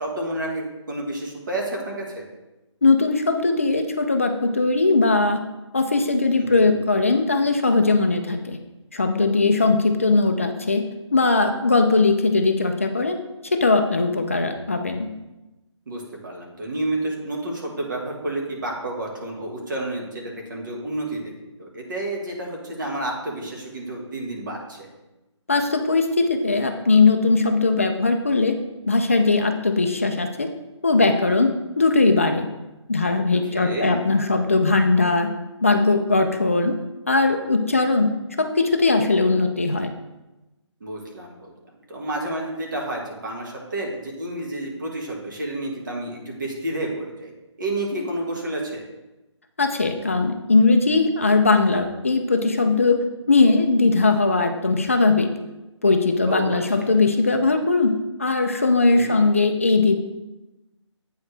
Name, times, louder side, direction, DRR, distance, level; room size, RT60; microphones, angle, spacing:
voice 1, 0.0-2.2 6.4-6.7 15.9-21.2 21.6-24.9 33.5-33.9 40.8-41.5 41.9-47.3 47.6-48.8 56.3-56.9 58.9-59.2, right 1 dB, 40° right, 0 dB, 1.4 m, -30 dB
voice 2, 2.8-5.4 5.7-8.6 8.9-10.8 11.1-13.2 13.4-15.1 25.5-28.6 28.9-30.5 30.8-32.5 32.9-35.3 35.6-36.8 37.1-38.1 38.4-39.9 49.6-55.3 55.8-60.0, left 3 dB, 25° left, 6 dB, 0.4 m, -19 dB
8.3 x 4.7 x 3.2 m, 1.0 s
figure-of-eight pair, 170°, 16 cm